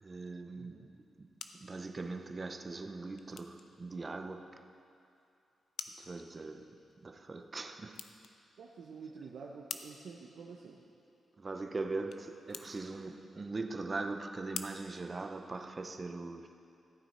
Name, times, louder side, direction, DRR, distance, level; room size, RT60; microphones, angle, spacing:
voice 1, 0.0-0.9 1.2-1.3 1.6-4.7 6.0-8.0 11.4-16.5, right 3 dB, 25° right, 0.5 m, -41 dB
voice 2, 0.5-0.9 8.6-10.8, right 5 dB, 75° right, 0.7 m, -49 dB
sound 1, 0.9-15.9, left 7 dB, 75° left, 0.5 m, -52 dB
14.0 x 9.0 x 4.3 m
wide cardioid pair, 145°, 0 cm